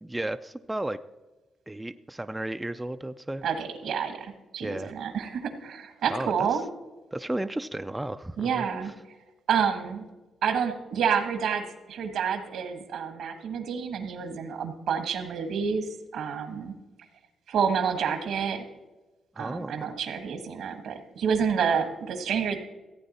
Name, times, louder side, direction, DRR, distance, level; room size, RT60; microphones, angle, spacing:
voice 1, 0.0-1.0 1.7-3.5 4.6-4.9 6.1-6.4 7.1-8.7 19.4-19.9, right 1 dB, 10° right, 10 dB, 0.4 m, -33 dB
voice 2, 3.4-6.6 8.4-8.9 9.5-10.0 10.4-16.7 17.5-18.6 19.4-22.6, right 7 dB, 80° right, 9 dB, 1.4 m, -29 dB
14.5 x 8.6 x 4.2 m, 1.1 s
cardioid pair, 100°, 0 cm